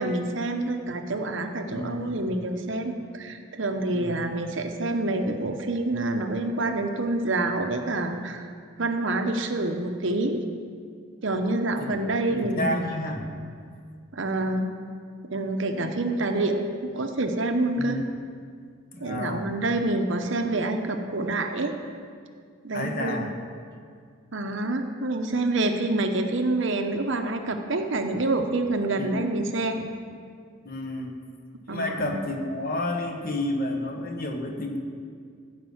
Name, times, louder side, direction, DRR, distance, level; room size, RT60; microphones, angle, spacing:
voice 1, 0.0-8.5 8.8-10.4 11.2-12.8 14.1-14.8 15.3-18.0 19.0-21.7 22.6-23.3 24.3-29.9 31.7-32.2, right 2 dB, 55° right, 5 dB, 0.9 m, -27 dB
voice 2, 1.7-2.2 3.9-4.1 12.3-13.3 15.7-15.9 17.8-18.0 18.9-19.5 22.7-23.3 29.0-29.2 30.6-31.1 31.7-34.8, left 1 dB, 40° left, 3 dB, 1.2 m, -30 dB
14.5 x 5.4 x 7.9 m, 2.2 s
head